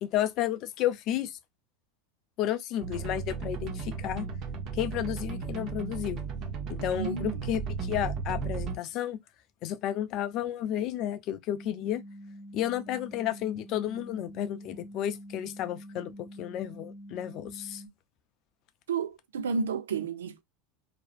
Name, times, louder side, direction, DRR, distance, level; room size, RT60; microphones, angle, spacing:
voice 1, 0.0-1.4 2.4-4.3 4.7-6.2 6.7-9.2 9.6-12.0 12.5-17.8, left 12 dB, 55° left, 0.4 m, -32 dB
sound 1, 2.8-8.8, right 5 dB, 45° right, 0.7 m, -35 dB
voice 2, 6.8-7.6 18.9-20.4, right 5 dB, 85° right, 0.3 m, -32 dB
sound 2, 11.5-17.9, equal, 15° right, 0.9 m, -46 dB
2.4 x 2.1 x 2.4 m
hypercardioid pair, 95°, 0 cm